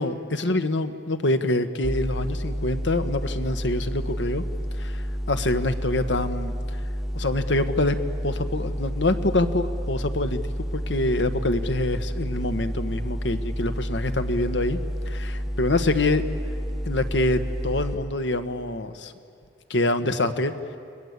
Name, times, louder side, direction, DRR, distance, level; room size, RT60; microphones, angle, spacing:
voice 1, 0.0-4.4 4.8-6.5 7.1-8.0 8.2-10.4 10.7-14.8 15.1-16.2 16.8-19.1 19.7-20.5, left 2 dB, 85° left, 9 dB, 1.4 m, -25 dB
sound 1, 1.8-18.0, equal, ahead, 0.6 m, -30 dB
29.5 x 21.5 x 8.3 m, 2.5 s
head